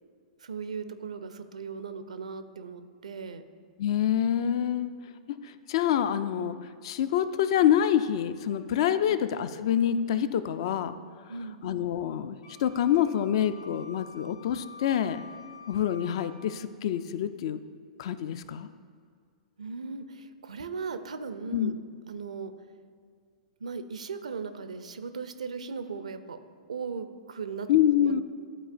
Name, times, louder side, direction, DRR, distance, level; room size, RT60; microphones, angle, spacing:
voice 1, 0.4-3.4 9.1-9.2 11.3-11.7 19.6-21.8 22.1-22.5 23.6-26.4 26.7-27.7 28.0-28.2, right 5 dB, 70° right, 10 dB, 0.4 m, -38 dB
voice 2, 3.8-4.9 5.3-6.5 6.8-11.0 11.6-15.2 15.7-17.6 18.0-18.7 21.5-21.7 27.7-28.2, left 10 dB, 50° left, 12 dB, 0.3 m, -26 dB
Wind instrument woodwind instrument, 12.4-16.5, left 3 dB, 85° left, 1.4 m, -48 dB
12.0 x 4.2 x 2.5 m, 2.1 s
figure-of-eight pair, 105°, 4 cm